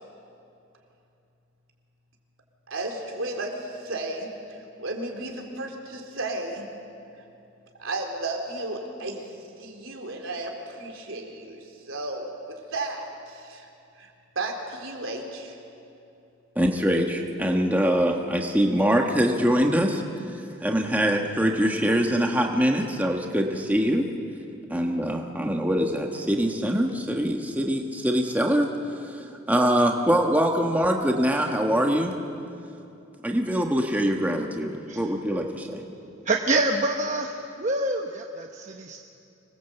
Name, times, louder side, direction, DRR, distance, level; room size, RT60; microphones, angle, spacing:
voice 1, 2.7-6.7 7.8-9.3 9.6-13.7 14.0-14.1 14.4-15.6 23.7-23.9, right 2 dB, 75° right, 2 dB, 3.8 m, -34 dB
voice 2, 16.5-20.0 20.6-24.1 24.7-28.7 29.1-32.1 33.2-35.8, equal, 10° right, 1 dB, 1.4 m, -23 dB
voice 3, 36.2-39.0, right 2 dB, 35° right, 2 dB, 1.0 m, -26 dB
26.0 x 20.5 x 8.2 m, 2.7 s
head